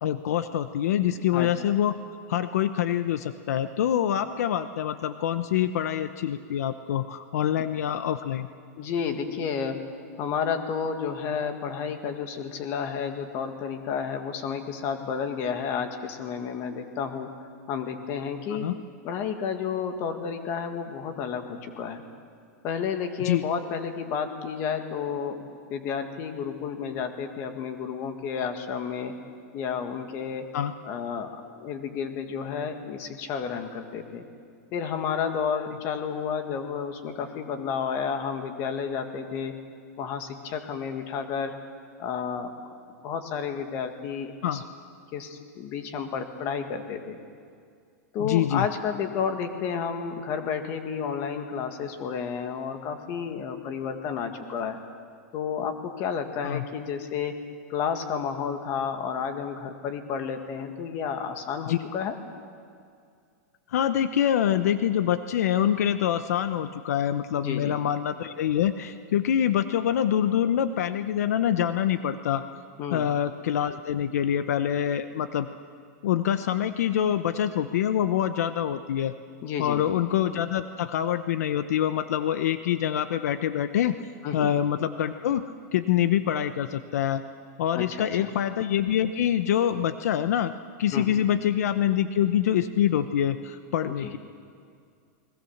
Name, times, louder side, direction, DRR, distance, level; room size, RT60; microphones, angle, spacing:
voice 1, 0.0-1.9 2.3-8.5 18.5-18.7 23.2-23.4 30.5-30.7 44.4-44.6 48.2-48.7 56.4-56.6 61.7-61.8 63.7-72.4 72.9-75.5 76.0-79.1 79.6-84.0 84.3-85.4 85.7-87.2 87.6-90.5 90.8-94.2, left 10 dB, 65° left, 11 dB, 0.9 m, -25 dB
voice 2, 8.8-9.8 10.2-17.3 17.7-18.7 19.0-22.0 22.6-29.1 29.5-30.5 30.8-31.3 31.6-34.2 34.7-39.5 40.0-41.5 42.0-42.5 43.0-44.6 45.1-47.2 48.1-54.8 55.3-57.3 57.7-62.2 67.4-67.8 72.8-73.1 79.4-79.8 84.2-84.5 87.8-88.3 90.9-91.2 93.9-94.1, left 6 dB, 30° left, 6 dB, 1.8 m, -31 dB
29.5 x 21.0 x 7.3 m, 2.3 s
supercardioid pair, 175°, 9 cm